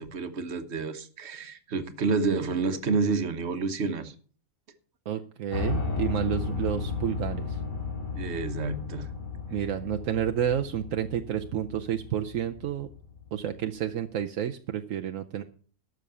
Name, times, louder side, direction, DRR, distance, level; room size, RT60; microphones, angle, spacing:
voice 1, 0.0-4.1 8.1-9.1, right 4 dB, 55° right, 9 dB, 1.4 m, -29 dB
voice 2, 5.1-7.6 9.5-12.9 13.3-15.4, right 10 dB, 80° right, 6 dB, 1.1 m, -30 dB
Piano, 5.5-13.5, left 4 dB, 80° left, 6.1 m, -34 dB
12.5 x 6.6 x 6.8 m, 0.43 s
omnidirectional pair, 1.4 m